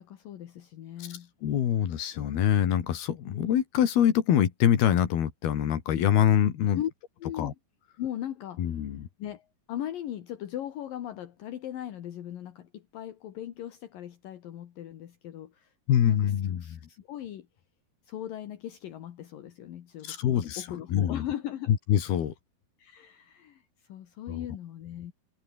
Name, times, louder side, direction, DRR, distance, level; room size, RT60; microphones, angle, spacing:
voice 1, 0.0-1.3 6.7-6.9 7.2-7.6 8.0-8.7 9.2-15.7 16.0-17.5 18.1-21.7 22.8-25.1, left 11 dB, 70° left, 3.2 m, -39 dB
voice 2, 1.4-6.8 7.4-7.5 8.6-9.1 15.9-16.8 20.1-20.6 20.9-21.2 21.9-22.3 24.3-24.5, left 10 dB, 85° left, 4.3 m, -25 dB
omnidirectional pair, 4.3 m